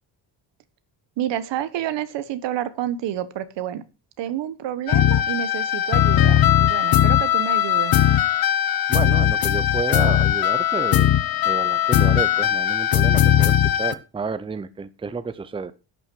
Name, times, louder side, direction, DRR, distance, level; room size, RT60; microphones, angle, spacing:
voice 1, 1.2-3.8 4.2-8.0, right 11 dB, 85° right, 13 dB, 1.3 m, -29 dB
sound 1, 4.9-13.9, left 11 dB, 55° left, 0.9 m, -19 dB
voice 2, 8.9-11.1 11.4-15.7, right 5 dB, 15° right, 14 dB, 0.6 m, -30 dB
11.5 x 6.1 x 6.2 m, 0.31 s
cardioid pair, 150°, 42 cm